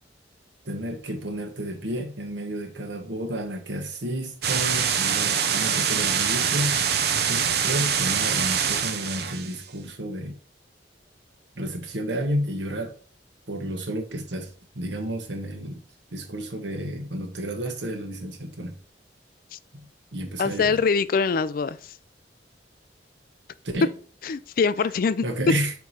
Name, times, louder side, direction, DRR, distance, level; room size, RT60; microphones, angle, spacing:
voice 1, 0.6-6.8 7.3-10.4 11.5-12.9 13.5-15.8 16.1-18.8 19.7-20.8 23.6-23.9 25.2-25.7, equal, 85° right, 1.2 m, -31 dB
sound 1, 4.4-9.6, right 7 dB, 65° right, 0.7 m, -24 dB
voice 2, 20.4-21.9 24.2-25.2, left 5 dB, 55° left, 0.4 m, -24 dB
4.7 x 4.6 x 5.5 m
head